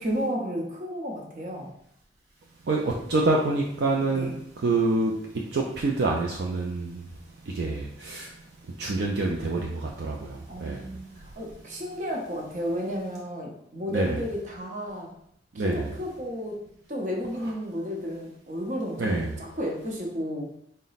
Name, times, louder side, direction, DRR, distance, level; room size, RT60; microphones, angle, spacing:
voice 1, 0.0-1.7 4.0-4.4 10.5-15.1 15.5-16.6 16.9-20.5, equal, 45° right, 0 dB, 0.8 m, -32 dB
voice 2, 2.7-4.3 4.6-5.1 5.5-7.0 7.5-8.3 8.8-10.9 13.9-14.2 15.5-15.8 19.0-19.4, right 2 dB, 65° right, -1 dB, 0.4 m, -26 dB
4.0 x 2.1 x 4.0 m, 0.72 s
head